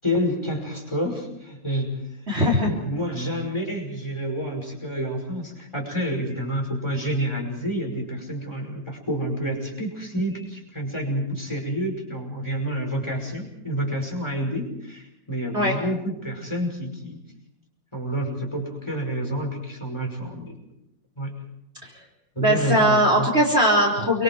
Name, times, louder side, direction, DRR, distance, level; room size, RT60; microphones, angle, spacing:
voice 1, 0.0-2.0 2.7-17.2 17.9-20.5 21.2-21.4 22.4-23.3, equal, 15° left, 1 dB, 5.6 m, -28 dB
voice 2, 2.3-2.7 15.5-15.8 21.8-21.9 22.4-24.2, equal, 35° right, 0 dB, 4.2 m, -20 dB
28.0 x 25.0 x 4.7 m, 0.82 s
omnidirectional pair, 2.0 m